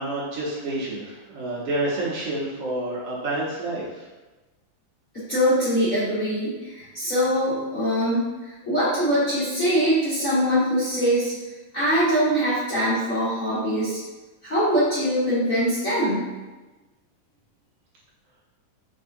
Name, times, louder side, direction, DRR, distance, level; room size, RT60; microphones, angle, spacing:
voice 1, 0.0-4.1, right 2 dB, 65° right, -6 dB, 1.7 m, -29 dB
voice 2, 5.1-8.3 8.6-11.3 11.7-14.0 14.4-16.3, equal, 65° left, -11 dB, 0.8 m, -23 dB
5.5 x 3.4 x 2.6 m, 1.2 s
omnidirectional pair, 3.5 m